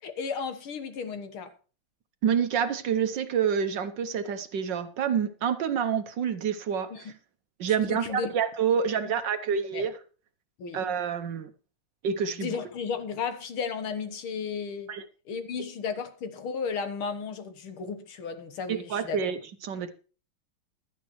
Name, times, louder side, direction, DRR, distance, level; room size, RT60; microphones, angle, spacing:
voice 1, 0.0-1.5 6.9-7.1 7.9-8.3 8.9-9.2 9.7-9.9 10.6-10.8 12.3-14.9 15.3-19.2, left 6 dB, 75° left, 2.1 m, -34 dB
voice 2, 2.2-6.9 7.6-9.9 10.7-11.5 12.0-12.6 14.9-15.0 18.7-19.9, right 7 dB, 65° right, 1.4 m, -28 dB
16.0 x 11.5 x 3.1 m
omnidirectional pair, 2.4 m